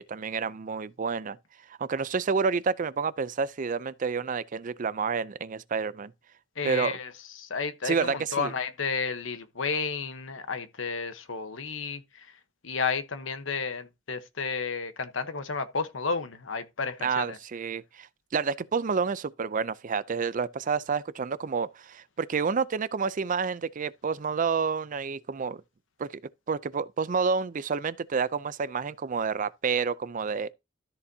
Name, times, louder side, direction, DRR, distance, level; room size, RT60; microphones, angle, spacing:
voice 1, 0.0-1.4 1.8-6.1 6.6-7.0 7.8-8.5 17.0-18.1 18.3-25.6 26.0-26.2 26.5-30.5, right 5 dB, 40° right, 0.4 m, -29 dB
voice 2, 6.6-12.4 12.6-17.4, left 5 dB, 75° left, 1.0 m, -32 dB
13.0 x 7.0 x 2.7 m
head